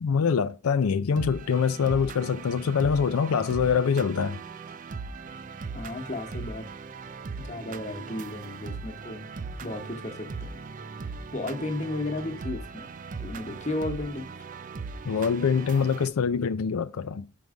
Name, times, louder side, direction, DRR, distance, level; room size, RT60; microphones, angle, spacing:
voice 1, 0.0-4.4 15.0-17.3, left 6 dB, 85° left, 0.4 m, -24 dB
sound 1, 1.2-16.1, right 4 dB, 35° right, 0.4 m, -39 dB
voice 2, 5.7-6.7 7.4-9.3 9.6-10.5 10.9-14.2, left 2 dB, 35° left, 1.2 m, -34 dB
5.4 x 4.7 x 4.9 m
head